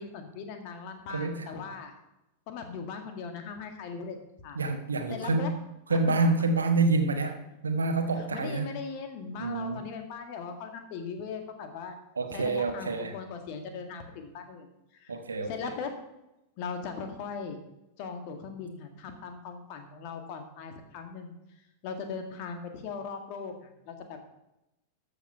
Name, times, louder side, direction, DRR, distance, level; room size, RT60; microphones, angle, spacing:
voice 1, 0.0-1.9 2.5-4.6 5.1-5.5 5.9-6.2 8.1-12.0 12.3-16.0 16.6-17.6 18.0-24.2, left 5 dB, 45° left, 5 dB, 1.8 m, -39 dB
voice 2, 1.1-1.5 4.5-5.5 5.9-8.7 9.4-9.8 12.2-13.1 15.1-15.5, right 3 dB, 75° right, 7 dB, 1.2 m, -27 dB
13.0 x 6.5 x 5.6 m, 0.91 s
figure-of-eight pair, 90°, 0 cm